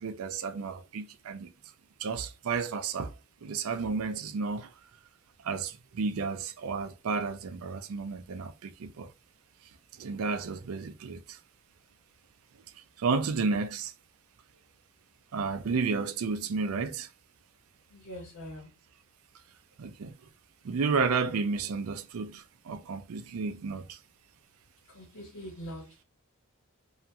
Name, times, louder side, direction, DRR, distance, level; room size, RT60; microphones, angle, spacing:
voice 1, 0.0-1.5 2.0-3.1 3.4-4.7 5.4-9.1 9.9-11.4 13.0-13.9 15.3-17.1 19.8-20.1 20.6-24.0, right 4 dB, 75° right, 0.4 m, -32 dB
voice 2, 17.9-18.7 24.9-25.8, equal, 90° left, 1.2 m, -42 dB
2.8 x 2.4 x 2.2 m
head